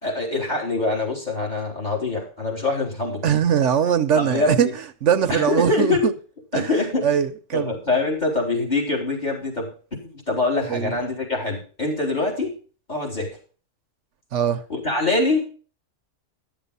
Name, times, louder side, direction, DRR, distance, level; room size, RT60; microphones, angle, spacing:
voice 1, 0.0-3.3 4.1-4.7 5.3-6.1 6.5-7.1 7.5-12.5 12.9-13.3 14.7-15.5, left 3 dB, 35° left, 3.9 m, -24 dB
voice 2, 3.2-4.7 5.0-6.1 6.5-6.7 7.0-7.7 10.7-10.9 14.3-14.6, right 8 dB, 70° right, 1.1 m, -21 dB
12.0 x 7.1 x 5.5 m
omnidirectional pair, 1.3 m